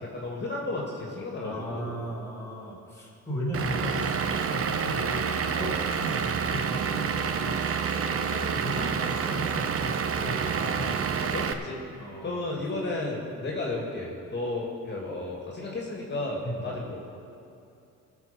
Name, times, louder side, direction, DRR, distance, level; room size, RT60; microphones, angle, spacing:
voice 1, 0.0-2.0 5.5-5.8 10.4-11.8 12.2-17.0, left 2 dB, 35° left, -2 dB, 2.5 m, -33 dB
voice 2, 1.4-7.7 8.1-10.9 12.0-12.6 13.5-13.6 16.4-16.7, equal, 10° left, -5 dB, 2.8 m, -36 dB
Vehicle / Engine, 3.5-11.5, right 6 dB, 50° right, 0.8 m, -28 dB
18.0 x 6.4 x 5.4 m, 2.7 s
cardioid pair, 90°, 30 cm